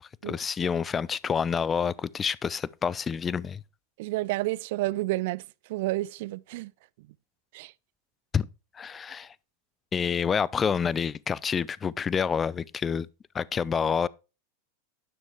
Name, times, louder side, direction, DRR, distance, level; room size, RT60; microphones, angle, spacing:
voice 1, 0.0-3.6 8.3-8.5 8.7-9.3 9.9-13.1 13.3-14.1, left 6 dB, 25° left, 0.3 m, -28 dB
voice 2, 4.0-5.4 5.7-6.7 7.5-7.7, right 18 dB, 65° right, 0.3 m, -30 dB
9.9 x 6.2 x 3.5 m
hypercardioid pair, 105°, 0 cm